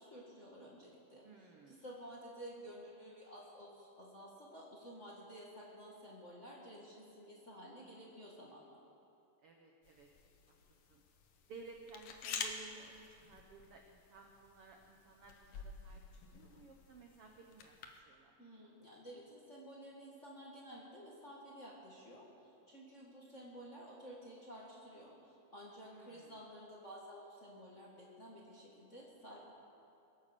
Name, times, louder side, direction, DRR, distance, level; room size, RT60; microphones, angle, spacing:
voice 1, 0.0-8.8 18.4-29.5, equal, 30° left, -5 dB, 1.5 m, -53 dB
voice 2, 1.2-1.8 9.4-10.1 10.7-11.0 11.5-18.4 25.8-26.4, right 4 dB, 75° right, 2 dB, 1.3 m, -57 dB
sound 1, 9.8-18.0, left 5 dB, 70° left, 1.4 m, -49 dB
22.5 x 8.8 x 6.8 m, 2.7 s
omnidirectional pair, 4.0 m